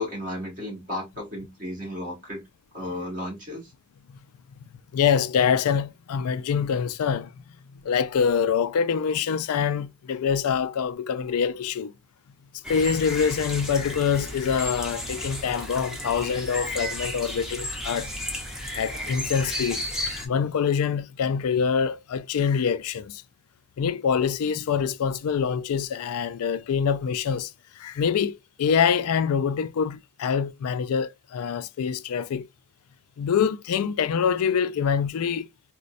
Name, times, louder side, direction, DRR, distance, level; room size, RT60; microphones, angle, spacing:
voice 1, 0.0-2.4 2.7-3.7, left 1 dB, 35° right, 1.8 m, -33 dB
voice 2, 4.9-7.4 7.8-11.9 12.7-18.1 18.7-19.8 20.2-23.2 23.8-32.5 33.2-35.5, left 7 dB, 80° left, 0.4 m, -25 dB
sound 1, 12.6-20.3, left 1 dB, ahead, 0.7 m, -33 dB
4.0 x 2.1 x 2.4 m
head